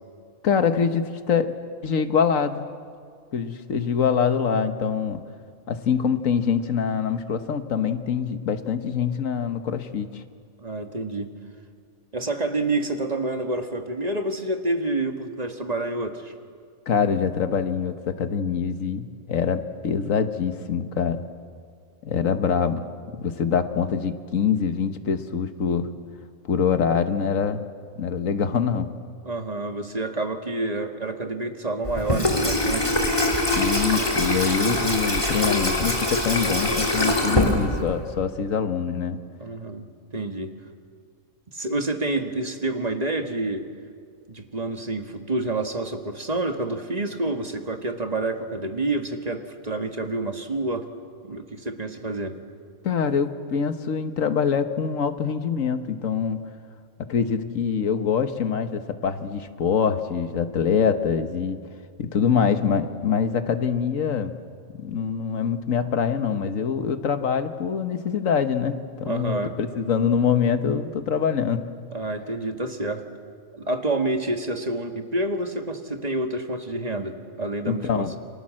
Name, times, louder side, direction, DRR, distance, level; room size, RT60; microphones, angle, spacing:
voice 1, 0.4-1.5 1.8-2.7 3.3-5.2 5.7-10.2 16.9-21.2 22.0-25.9 26.5-27.6 28.0-28.9 33.6-39.2 52.8-56.4 57.1-61.6 62.0-64.3 64.8-71.6 77.7-78.1, left 6 dB, 75° left, 9 dB, 1.6 m, -24 dB
voice 2, 10.6-11.3 12.1-16.3 29.2-32.9 39.4-39.9 40.1-40.5 41.5-43.7 44.3-50.9 51.2-52.4 69.0-69.5 71.9-73.0 73.5-78.2, right 2 dB, 30° right, 6 dB, 1.7 m, -28 dB
Water tap faucet / Sink (filling or washing), 31.8-38.1, left 1 dB, 25° left, 3.2 m, -23 dB
29.5 x 24.5 x 7.6 m, 2.1 s
omnidirectional pair, 1.4 m